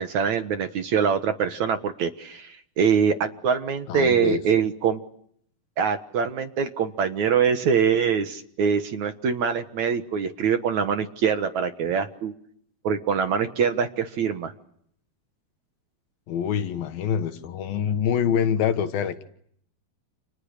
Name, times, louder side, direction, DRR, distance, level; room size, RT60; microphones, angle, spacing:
voice 1, 0.0-5.0 5.8-12.3 12.8-14.5, right 6 dB, 60° right, 9 dB, 2.3 m, -24 dB
voice 2, 3.9-4.4 16.3-19.2, left 8 dB, 70° left, 10 dB, 3.2 m, -25 dB
30.0 x 29.5 x 6.7 m, 0.66 s
omnidirectional pair, 4.5 m